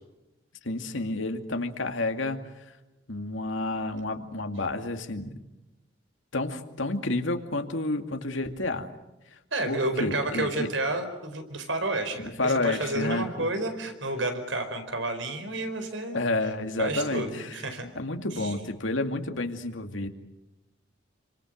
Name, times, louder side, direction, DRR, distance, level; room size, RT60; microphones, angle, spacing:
voice 1, 0.6-2.8 3.1-5.4 6.3-8.9 9.3-9.4 9.7-10.7 12.2-13.5 16.1-17.6 18.0-20.1, left 2 dB, 75° left, 6 dB, 2.4 m, -30 dB
voice 2, 9.5-16.2 16.8-17.9 18.3-18.5, right 2 dB, 75° right, 8 dB, 4.7 m, -30 dB
28.5 x 26.0 x 6.6 m, 0.96 s
head